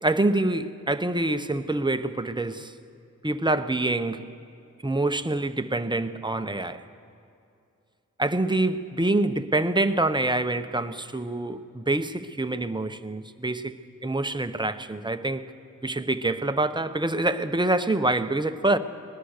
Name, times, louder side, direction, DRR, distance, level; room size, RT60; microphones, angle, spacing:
voice 1, 0.0-2.7 3.2-4.3 4.8-6.9 8.2-13.8 14.0-15.5 15.8-18.8, right 2 dB, 15° right, 9 dB, 0.8 m, -26 dB
22.0 x 20.0 x 6.6 m, 2.4 s
wide cardioid pair, 55°, 32 cm